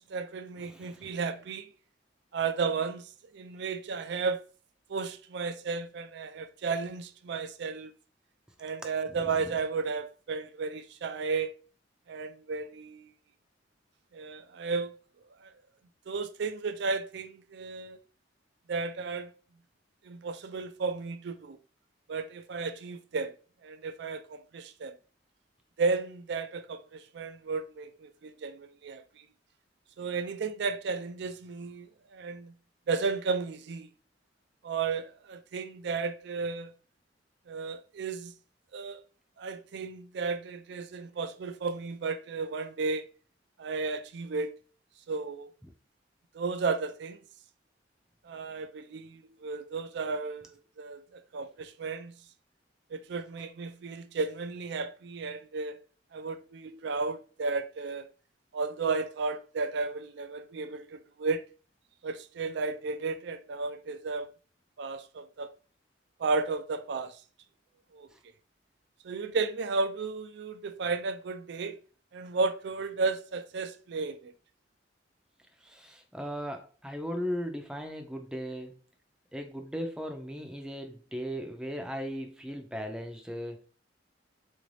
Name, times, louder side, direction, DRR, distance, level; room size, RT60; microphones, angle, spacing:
voice 1, 0.0-1.7 2.3-3.0 3.3-4.4 4.9-7.9 8.6-11.5 12.1-13.1 14.1-14.9 15.4-15.5 16.1-18.0 18.7-19.3 20.0-21.6 22.1-23.3 23.6-25.0 25.8-29.0 30.0-32.5 32.9-33.9 34.6-36.7 37.5-38.3 38.7-39.0 39.4-43.1 43.6-44.5 45.1-45.5 46.3-47.2 48.2-50.4 50.8-52.1 52.9-55.8 56.1-58.1 58.5-61.4 62.0-64.3 64.8-65.5 66.2-67.2 67.9-68.1 69.0-71.8 72.1-74.3, right 4 dB, 60° right, 0.4 m, -33 dB
voice 2, 0.6-1.2 9.1-9.5 75.6-78.8 79.3-83.6, equal, 5° right, 0.5 m, -37 dB
3.8 x 2.6 x 3.2 m
head